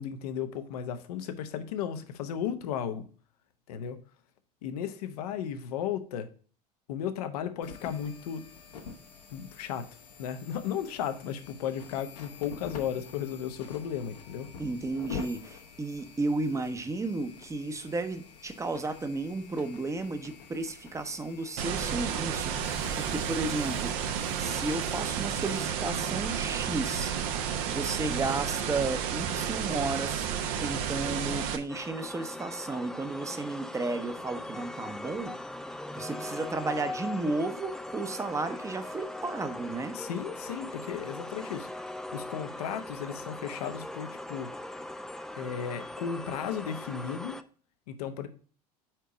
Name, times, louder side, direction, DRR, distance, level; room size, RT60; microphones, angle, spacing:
voice 1, 0.0-3.0 3.7-4.0 4.6-6.3 6.9-8.4 9.3-9.9 10.2-14.5 39.9-41.9 42.1-44.5 45.4-47.4 47.9-48.3, left 8 dB, 70° left, 9 dB, 0.8 m, -35 dB
sound 1, 7.6-25.6, left 6 dB, 85° left, 1.3 m, -47 dB
voice 2, 14.6-22.5 23.0-23.9 24.4-27.1 27.7-30.3 30.6-35.3 35.9-40.0, right 3 dB, 15° right, 9 dB, 0.8 m, -33 dB
sound 2, 21.6-31.6, right 8 dB, 60° right, 0.8 m, -31 dB
sound 3, 31.7-47.4, left 1 dB, ahead, 0.4 m, -40 dB
4.6 x 4.5 x 5.0 m, 0.42 s
hypercardioid pair, 80°, 20 cm